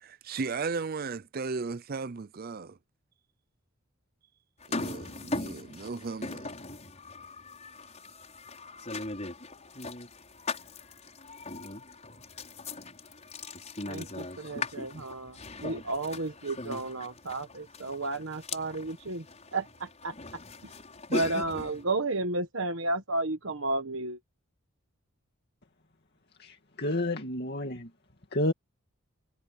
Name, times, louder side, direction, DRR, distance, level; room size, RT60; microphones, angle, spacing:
voice 1, 0.0-2.8 4.7-6.5, right 4 dB, 45° right, 0.5 m, -35 dB
sound 1, 4.6-21.8, left 2 dB, 30° left, 6.6 m, -39 dB
voice 2, 13.9-19.2 19.5-20.1 20.6-20.7 21.1-24.2, right 2 dB, 65° right, 1.4 m, -32 dB
voice 3, 26.4-27.9 28.3-28.5, left 1 dB, 50° left, 2.5 m, -30 dB
head